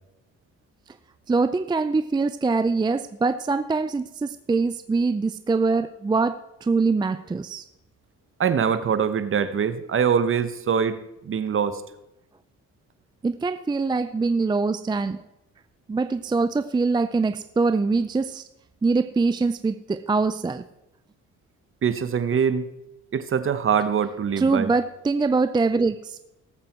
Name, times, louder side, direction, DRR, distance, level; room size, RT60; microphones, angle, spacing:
voice 1, 1.3-7.7 13.2-15.2 15.9-18.4 18.8-20.6 24.4-26.2, right 4 dB, 15° right, 0.4 m, -23 dB
voice 2, 8.4-11.0 11.2-11.8 21.8-22.7 23.1-24.7, right 7 dB, 45° right, 1.0 m, -23 dB
18.0 x 7.8 x 4.4 m
cardioid pair, 90°, 30 cm